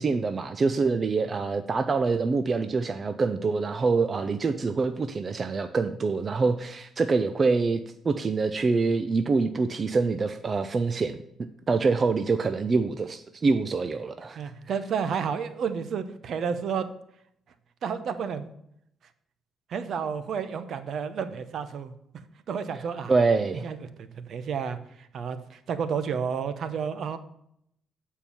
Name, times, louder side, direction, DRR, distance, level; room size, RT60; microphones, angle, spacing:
voice 1, 0.0-7.8 8.0-11.2 11.7-14.4 23.1-23.7, right 4 dB, 35° right, 10 dB, 0.5 m, -25 dB
voice 2, 1.0-1.3 14.4-16.9 17.8-18.5 19.7-21.9 22.5-23.1 23.6-27.2, right 6 dB, 65° right, 11 dB, 0.9 m, -31 dB
8.8 x 4.6 x 7.0 m, 0.74 s
cardioid pair, 90°, 0 cm